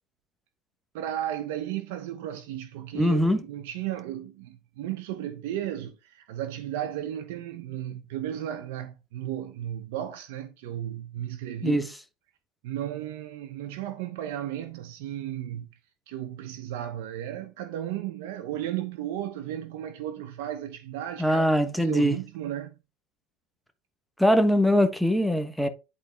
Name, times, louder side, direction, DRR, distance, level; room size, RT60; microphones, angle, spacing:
voice 1, 0.9-11.8 12.6-15.7 16.1-21.5 21.8-22.7, right 11 dB, 80° right, 0.9 m, -34 dB
voice 2, 2.9-3.4 11.6-11.9 21.2-22.2 24.2-25.7, equal, ahead, 1.1 m, -22 dB
11.0 x 4.0 x 3.5 m
supercardioid pair, 120°, 0 cm